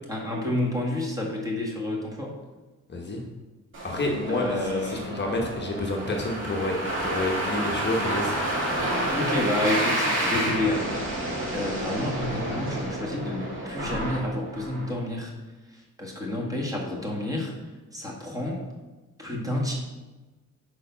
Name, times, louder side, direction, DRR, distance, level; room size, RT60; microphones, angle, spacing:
voice 1, 0.1-2.3 4.3-5.1 9.1-15.3 15.7-17.5 17.9-18.6 19.2-19.7, left 1 dB, 10° right, -2 dB, 1.5 m, -29 dB
voice 2, 2.9-3.2 3.8-8.5 8.8-8.9 10.3-10.4, left 2 dB, 35° left, 0 dB, 1.0 m, -29 dB
sound 1, 3.7-14.9, right 1 dB, 40° right, 2.2 m, -30 dB
6.6 x 4.8 x 5.6 m, 1.2 s
cardioid pair, 140°, 31 cm